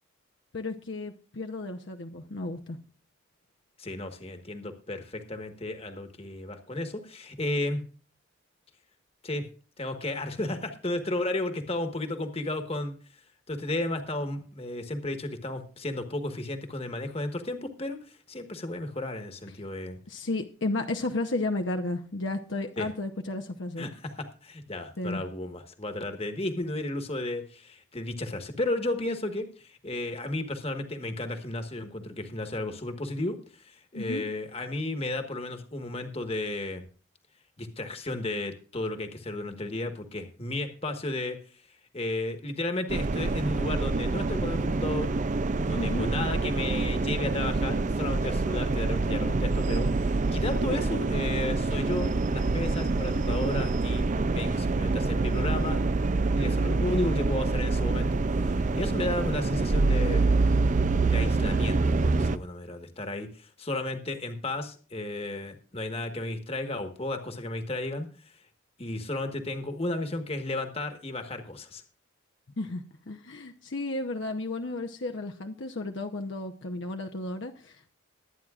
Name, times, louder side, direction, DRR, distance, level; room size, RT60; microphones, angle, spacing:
voice 1, 0.5-2.8 20.1-23.9 25.0-25.2 33.9-34.2 45.7-46.1 72.6-77.9, left 2 dB, 60° left, 3 dB, 0.8 m, -33 dB
voice 2, 3.8-7.8 9.2-9.4 9.8-13.0 13.5-20.0 22.8-22.9 23.8-36.8 37.6-41.4 41.9-45.1 45.6-54.0 54.3-55.8 56.3-60.3 61.1-68.1 68.8-71.8, left 2 dB, 30° left, 6 dB, 1.4 m, -33 dB
sound 1, 42.9-62.4, right 3 dB, 35° right, 0.4 m, -26 dB
21.5 x 9.3 x 2.5 m, 0.39 s
head